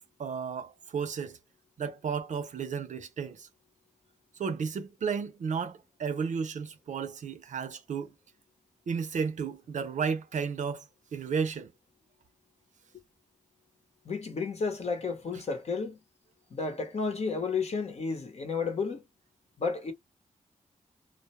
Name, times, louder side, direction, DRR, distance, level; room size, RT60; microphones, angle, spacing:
voice 1, 0.2-1.4 1.8-3.5 4.4-8.1 8.9-10.9 11.1-11.7, right 6 dB, 65° right, 0.5 m, -33 dB
voice 2, 14.0-16.0 16.5-19.0 19.6-19.9, left 4 dB, 55° left, 0.9 m, -32 dB
2.2 x 2.1 x 2.9 m
cardioid pair, 65°, 13 cm